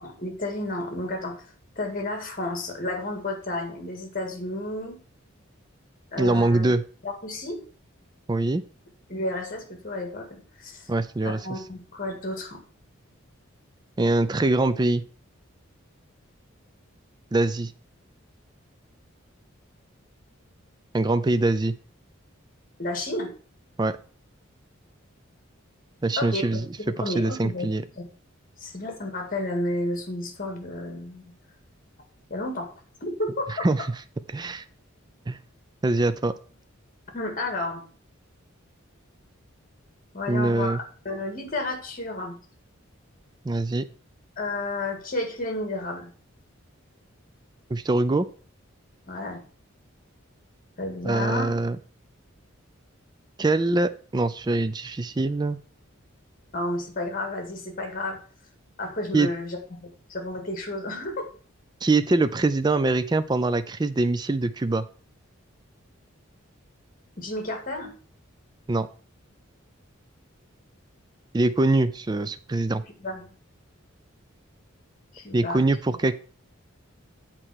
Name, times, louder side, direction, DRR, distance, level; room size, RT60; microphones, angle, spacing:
voice 1, 0.0-1.3 1.8-5.0 6.1-6.6 7.0-7.6 9.1-10.9 11.2-12.6 21.3-21.4 22.8-23.3 26.2-27.7 27.9-28.0 28.6-31.3 32.3-32.7 33.0-33.7 37.1-37.9 40.1-42.4 44.4-46.1 49.1-49.4 50.8-51.5 56.5-58.2 58.8-61.3 67.2-67.9 73.0-73.3 75.1-75.6, left 1 dB, 40° left, 4 dB, 2.0 m, -31 dB
voice 2, 6.2-6.8 8.3-8.6 10.9-11.4 14.0-15.0 17.3-17.7 20.9-21.7 23.8-24.0 26.0-26.7 27.0-27.8 33.6-33.8 34.3-34.6 35.3-35.4 35.8-36.3 40.3-40.8 43.4-43.8 47.7-48.3 51.0-51.8 53.4-55.6 59.1-59.3 61.8-64.8 68.7-68.9 71.3-72.8 75.3-76.1, right 2 dB, 20° right, 12 dB, 0.4 m, -23 dB
7.9 x 4.3 x 6.2 m, 0.40 s
head